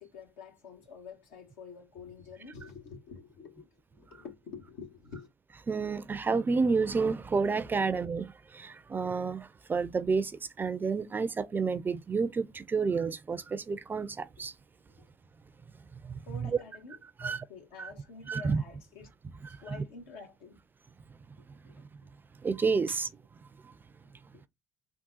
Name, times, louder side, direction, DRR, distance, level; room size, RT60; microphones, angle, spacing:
voice 1, 0.0-5.3 7.8-7.9 11.2-11.3 15.0-15.1 16.2-19.1 19.6-20.6 21.6-21.7 22.9-23.0 24.3-24.5, left 5 dB, 80° left, 1.1 m, -48 dB
voice 2, 5.7-8.2 8.5-14.5 16.0-16.5 17.2-17.4 17.8-17.9 18.3-18.6 19.5-19.6 22.4-23.1 23.6-23.7, right 4 dB, 25° right, 0.4 m, -30 dB
3.6 x 2.3 x 2.6 m
hypercardioid pair, 70°, 7 cm